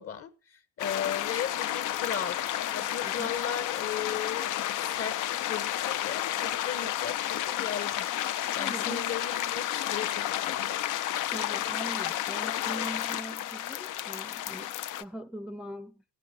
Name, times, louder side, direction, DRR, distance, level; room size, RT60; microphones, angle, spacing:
voice 1, 0.0-2.4 2.7-8.1 8.5-10.8, left 8 dB, 40° left, 1.4 m, -37 dB
sound 1, 0.8-15.0, left 12 dB, 60° left, 0.7 m, -31 dB
voice 2, 3.0-3.5 8.6-9.1 11.3-16.0, right 1 dB, 5° right, 0.6 m, -41 dB
15.5 x 9.0 x 3.8 m
supercardioid pair, 70°, 35 cm